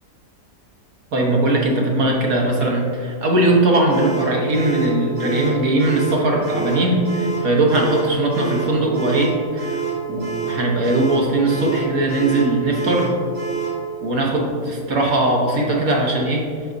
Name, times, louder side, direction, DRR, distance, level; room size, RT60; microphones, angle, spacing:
voice 1, 1.1-9.8 10.1-13.2 14.0-16.4, right 1 dB, 65° right, -1 dB, 1.5 m, -19 dB
sound 1, 3.9-13.8, right 6 dB, 85° right, 2.5 m, -27 dB
7.3 x 6.1 x 2.7 m, 2.3 s
omnidirectional pair, 1.6 m